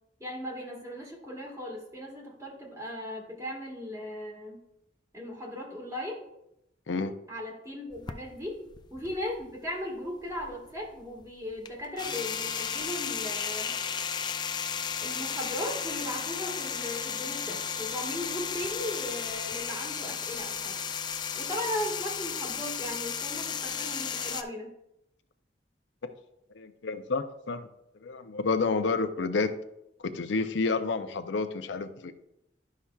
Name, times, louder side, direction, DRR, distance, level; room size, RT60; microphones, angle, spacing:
voice 1, 0.2-4.6 5.1-6.2 7.3-8.6 8.9-13.7 15.0-20.8 21.3-24.7, left 1 dB, 20° right, -1 dB, 1.6 m, -37 dB
voice 2, 6.9-7.2 26.0-26.1 26.5-27.7 28.0-29.5 30.0-32.1, left 4 dB, 90° left, 9 dB, 0.5 m, -30 dB
sound 1, 7.9-9.7 10.0-24.4, left 7 dB, 25° left, 0.4 m, -34 dB
11.0 x 5.7 x 2.3 m, 0.84 s
head